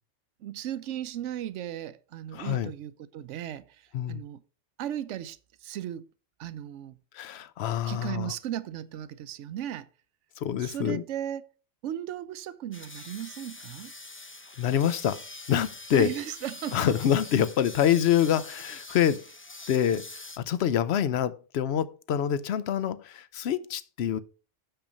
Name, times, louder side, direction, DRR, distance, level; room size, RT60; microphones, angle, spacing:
voice 1, 0.4-4.4 4.8-6.1 6.4-7.0 7.8-9.9 10.6-11.5 11.8-13.9 15.9-17.0, right 11 dB, 85° right, 0.9 m, -36 dB
voice 2, 2.3-2.7 3.9-4.2 7.1-8.3 10.4-11.0 14.6-16.1 16.7-19.2 19.7-24.2, left 9 dB, 65° left, 0.8 m, -26 dB
sound 1, 12.7-20.4, left 2 dB, 20° left, 0.3 m, -44 dB
6.8 x 5.7 x 5.1 m
omnidirectional pair, 1.2 m